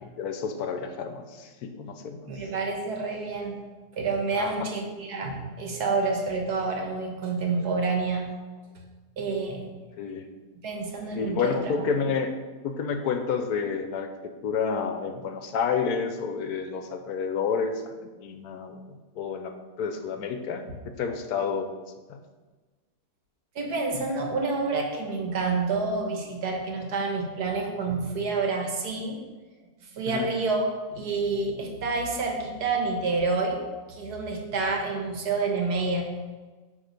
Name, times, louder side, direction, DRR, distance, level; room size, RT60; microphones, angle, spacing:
voice 1, 0.1-2.3 4.4-4.7 10.0-10.3 11.1-12.3 12.6-14.1 14.4-18.8 19.2-21.7 22.1-22.2 30.1-30.3, left 6 dB, 75° left, 7 dB, 1.1 m, -30 dB
voice 2, 2.2-3.6 3.9-8.3 9.2-9.7 10.6-11.7 20.7-20.8 23.5-29.2 29.9-36.1, right 3 dB, 75° right, 2 dB, 1.7 m, -28 dB
9.2 x 3.5 x 5.2 m, 1.3 s
omnidirectional pair, 1.7 m